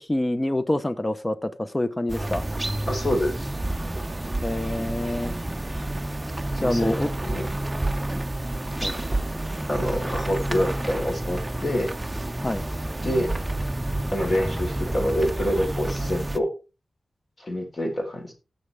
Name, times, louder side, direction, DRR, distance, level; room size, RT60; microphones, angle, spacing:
voice 1, 0.0-2.5 4.4-5.3 6.6-7.1 8.8-8.9 12.4-12.6, left 1 dB, 20° left, 0.8 m, -26 dB
sound 1, 2.1-16.4, right 1 dB, 15° right, 0.7 m, -29 dB
voice 2, 2.9-3.5 6.5-7.5 9.7-11.9 13.0-13.3 14.1-16.5 17.4-18.3, equal, 40° left, 4.1 m, -26 dB
16.0 x 6.8 x 3.5 m
wide cardioid pair, 105°, 0 cm